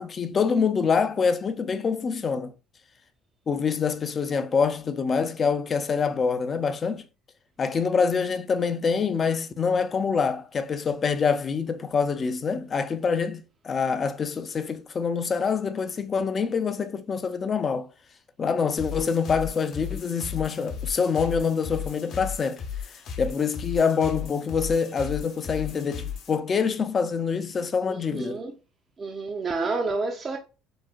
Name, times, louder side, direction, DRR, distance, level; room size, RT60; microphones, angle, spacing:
voice 1, 0.0-2.5 3.5-7.0 7.6-17.9 18.4-22.6 23.2-28.4, left 5 dB, 35° left, 0.4 m, -25 dB
sound 1, 18.8-26.4, left 7 dB, 60° left, 0.8 m, -36 dB
voice 2, 27.9-28.5 29.0-30.4, right 3 dB, 35° right, 0.5 m, -29 dB
3.9 x 2.1 x 2.4 m
supercardioid pair, 95°, 0 cm